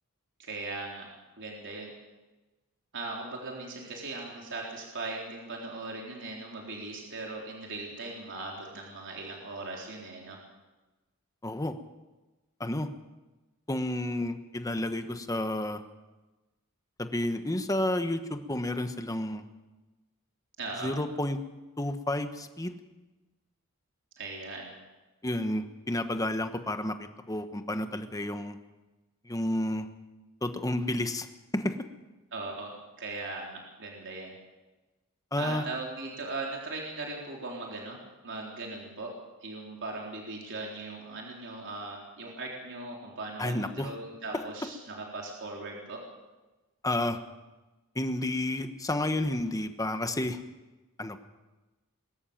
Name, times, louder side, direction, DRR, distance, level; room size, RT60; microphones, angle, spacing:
voice 1, 0.4-1.1 1.4-1.9 2.9-10.4 20.6-20.9 24.2-24.7 32.3-34.3 35.4-39.2 39.4-46.0, right 3 dB, 60° right, -1 dB, 3.9 m, -39 dB
voice 2, 11.4-11.7 12.6-12.9 13.7-15.8 17.0-19.4 20.8-21.4 21.8-22.8 25.2-28.6 29.2-29.9 30.4-31.3 31.5-31.8 35.3-35.6 43.4-43.9 44.3-44.4 46.8-47.2 47.9-50.4 51.0-51.2, left 1 dB, 15° left, 8 dB, 1.2 m, -31 dB
22.5 x 13.5 x 8.8 m, 1.1 s
head